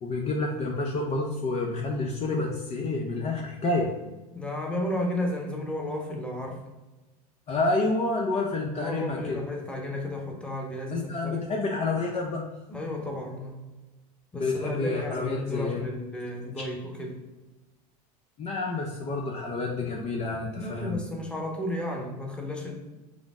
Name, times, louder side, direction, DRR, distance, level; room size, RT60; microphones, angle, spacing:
voice 1, 0.0-3.9 7.5-9.4 10.9-12.4 14.3-15.8 18.4-21.0, left 3 dB, 35° left, 0 dB, 0.6 m, -29 dB
voice 2, 4.3-6.6 8.8-11.4 12.7-13.6 14.3-17.2 20.5-22.7, left 1 dB, 5° left, 0 dB, 1.0 m, -33 dB
5.1 x 2.0 x 3.5 m, 1.1 s
hypercardioid pair, 95°, 19 cm